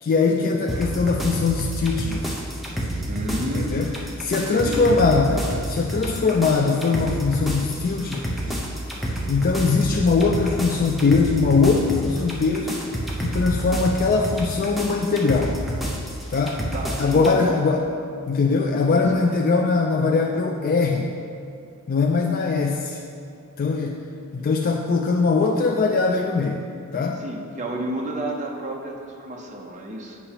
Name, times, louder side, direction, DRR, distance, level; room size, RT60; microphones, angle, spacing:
voice 1, 0.0-2.4 3.5-3.9 4.2-8.6 9.3-12.7 13.2-15.6 16.3-16.6 17.0-17.8 18.3-21.1 21.9-23.0 23.6-24.0 24.3-26.6 26.9-27.2, left 4 dB, 45° left, 1 dB, 0.3 m, -21 dB
sound 1, 0.7-17.3, right 1 dB, ahead, 0.7 m, -29 dB
voice 2, 2.8-3.8 4.3-5.0 16.7-17.5 18.7-19.2 27.2-30.2, right 1 dB, 35° right, 0 dB, 0.7 m, -31 dB
8.3 x 5.6 x 2.9 m, 2.5 s
head